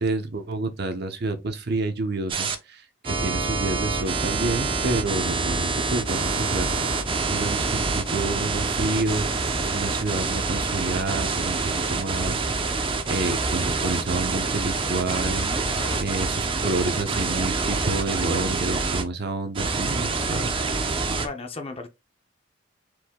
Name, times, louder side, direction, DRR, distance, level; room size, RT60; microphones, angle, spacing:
voice 1, 0.0-2.8 3.2-7.0 7.3-9.4 9.7-12.4 13.1-15.7 16.0-20.6, right 2 dB, 55° right, 0.8 m, -29 dB
sound 1, 2.3-2.5 3.0-19.0 19.5-21.3, right 3 dB, 25° right, 0.6 m, -26 dB
voice 2, 21.2-21.9, left 3 dB, 30° left, 0.7 m, -35 dB
4.7 x 2.7 x 3.6 m
head